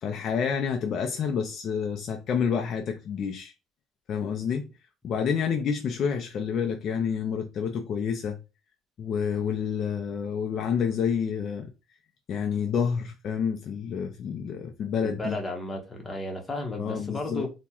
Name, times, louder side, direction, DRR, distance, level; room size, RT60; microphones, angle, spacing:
voice 1, 0.0-3.5 4.1-4.7 5.0-8.4 9.0-11.7 12.3-15.4 16.8-17.5, left 7 dB, 45° left, 0.3 m, -28 dB
voice 2, 15.0-17.5, left 1 dB, 15° left, 0.8 m, -33 dB
3.4 x 2.1 x 2.8 m
cardioid pair, 150°, 0 cm